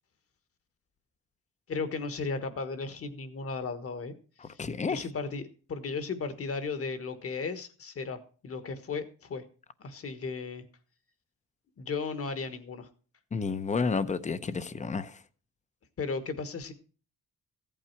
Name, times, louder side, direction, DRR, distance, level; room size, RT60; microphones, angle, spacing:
voice 1, 1.7-4.1 4.4-9.4 9.8-10.6 11.8-12.9 16.0-16.7, left 4 dB, 45° left, 1.5 m, -35 dB
voice 2, 4.4-5.1 13.3-15.2, left 5 dB, 25° left, 0.7 m, -31 dB
15.0 x 8.7 x 4.6 m
wide cardioid pair, 160°, 31 cm